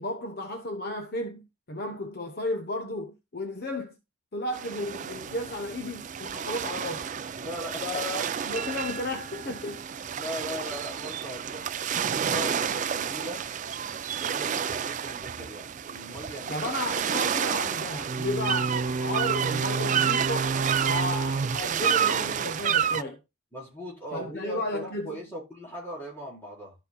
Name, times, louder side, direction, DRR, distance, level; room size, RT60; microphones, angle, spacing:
voice 1, 0.0-3.9 4.3-7.1 7.8-9.9 16.5-20.6 20.8-23.2 24.1-25.2, left 1 dB, 45° left, 0.9 m, -33 dB
sound 1, 4.5-23.0, right 7 dB, 35° right, 0.3 m, -29 dB
voice 2, 7.4-8.2 10.0-13.4 14.2-16.6 23.5-26.7, equal, 10° left, 4.1 m, -39 dB
13.5 x 5.5 x 2.3 m
head